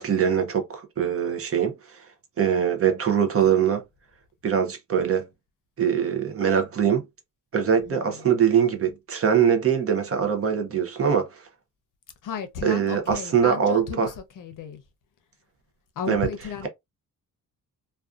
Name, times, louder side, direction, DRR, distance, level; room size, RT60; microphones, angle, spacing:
voice 1, 0.0-2.0 2.4-3.8 4.4-5.3 5.8-7.0 7.5-11.5 12.6-14.1 16.1-16.3, right 8 dB, 40° right, 0.5 m, -23 dB
voice 2, 7.9-8.3 12.2-14.8 16.0-16.7, left 7 dB, 60° left, 0.6 m, -34 dB
2.5 x 2.3 x 2.3 m
wide cardioid pair, 170°, 37 cm